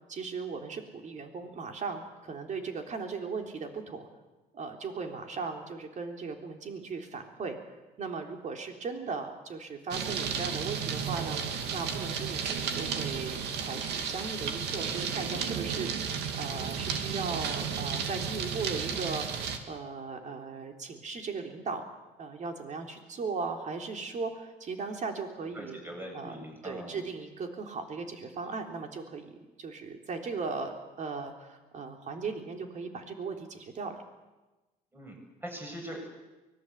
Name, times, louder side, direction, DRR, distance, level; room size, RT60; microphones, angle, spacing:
voice 1, 0.1-4.1 4.5-7.6 8.0-11.4 11.7-19.3 19.7-21.8 22.2-25.8 26.1-26.4 26.6-29.3 29.6-34.0, right 4 dB, 45° right, 4 dB, 3.7 m, -37 dB
sound 1, 9.9-19.6, right 6 dB, 80° right, 2.6 m, -33 dB
voice 2, 25.5-27.0 34.9-36.1, equal, 10° right, 1 dB, 7.4 m, -42 dB
24.0 x 20.0 x 8.3 m, 1.1 s
cardioid pair, 110°, 17 cm